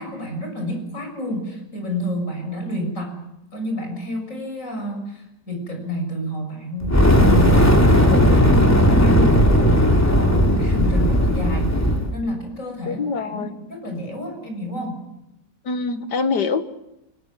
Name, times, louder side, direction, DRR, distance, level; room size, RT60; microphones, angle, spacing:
voice 1, 0.0-3.2 3.5-15.0, equal, 45° left, 3 dB, 7.1 m, -29 dB
Fire, 6.8-12.1, equal, 10° left, 2.8 m, -16 dB
voice 2, 12.9-13.5 15.7-16.6, left 4 dB, 70° left, 10 dB, 2.1 m, -24 dB
29.5 x 20.5 x 7.6 m, 0.88 s
omnidirectional pair, 1.9 m